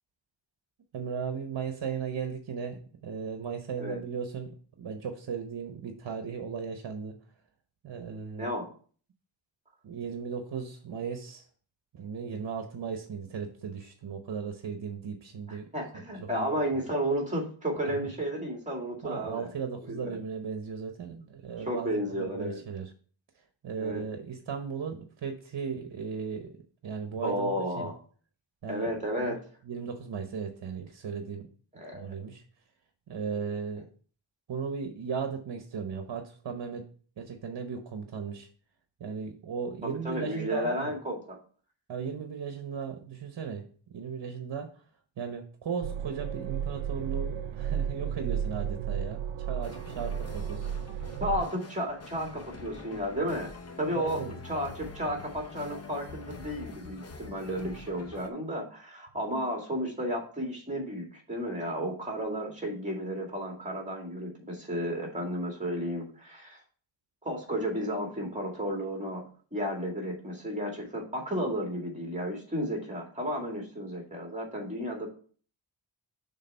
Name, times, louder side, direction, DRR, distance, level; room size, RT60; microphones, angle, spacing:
voice 1, 0.9-7.2 7.8-8.5 9.8-11.5 11.9-15.7 16.2-16.5 18.0-18.1 19.0-22.9 23.6-26.5 26.8-27.9 28.6-28.9 29.2-29.3 29.7-31.5 31.9-32.4 33.1-33.9 34.5-36.9 37.2-38.5 39.0-40.9 41.9-44.7 45.2-51.1 53.9-54.3, right 6 dB, 60° right, 6 dB, 0.9 m, -36 dB
voice 2, 8.4-8.7 15.5-19.5 19.8-20.2 21.7-22.6 23.7-24.0 27.2-27.9 28.7-29.4 31.7-32.0 39.8-41.4 51.2-53.5 53.8-66.6 67.2-75.1, equal, 15° right, 0 dB, 2.2 m, -33 dB
sound 1, 45.8-51.5, right 8 dB, 90° right, 0.6 m, -33 dB
sound 2, 49.6-58.3, left 3 dB, 35° left, 0.8 m, -45 dB
6.5 x 3.5 x 5.5 m, 0.43 s
wide cardioid pair, 105°, 45 cm